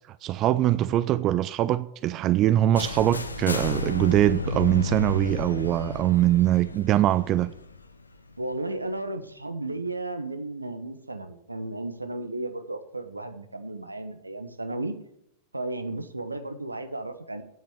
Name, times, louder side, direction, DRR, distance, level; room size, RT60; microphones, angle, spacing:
voice 1, 0.2-7.5, right 13 dB, 35° right, 0.4 m, -22 dB
sound 1, 2.8-8.6, left 3 dB, 80° left, 0.9 m, -33 dB
voice 2, 8.4-14.9 15.5-17.4, right 2 dB, 85° right, 1.1 m, -34 dB
9.4 x 8.5 x 7.0 m
figure-of-eight pair, 90°, 0 cm